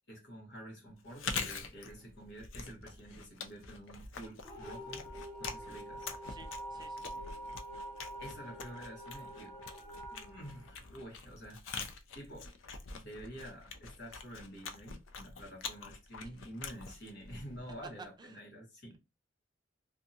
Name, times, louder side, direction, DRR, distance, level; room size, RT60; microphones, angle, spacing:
voice 1, 0.1-5.1 5.4-6.1 8.2-9.5 10.1-11.8 12.1-12.5 12.9-19.0, equal, 65° left, 1.1 m, -49 dB
Chewing mastication, 1.0-17.9, left 5 dB, 85° left, 0.4 m, -45 dB
sound 1, 4.4-11.4, right 1 dB, 20° left, 0.6 m, -46 dB
voice 2, 6.3-7.2 16.2-16.3 18.0-18.4, right 4 dB, 25° right, 0.4 m, -53 dB
2.6 x 2.2 x 2.6 m
head